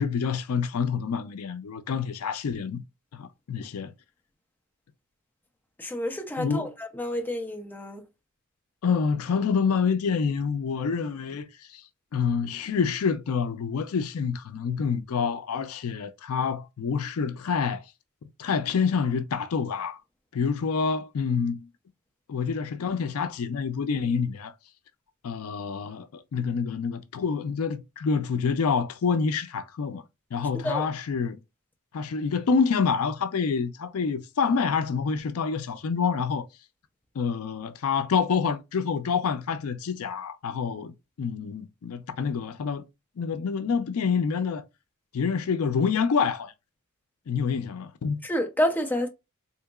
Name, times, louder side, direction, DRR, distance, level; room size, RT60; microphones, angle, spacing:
voice 1, 0.0-2.8 3.1-3.9 6.4-6.7 8.8-11.8 12.1-17.8 18.4-20.0 20.3-21.7 22.3-24.5 25.2-30.0 30.3-31.4 31.9-36.4 37.2-40.9 41.2-42.8 43.2-44.6 45.1-46.5 47.3-48.2, left 5 dB, 75° left, 0.4 m, -27 dB
voice 2, 5.8-8.0 30.6-30.9 48.2-49.1, equal, 10° left, 0.5 m, -29 dB
3.7 x 2.8 x 2.3 m
head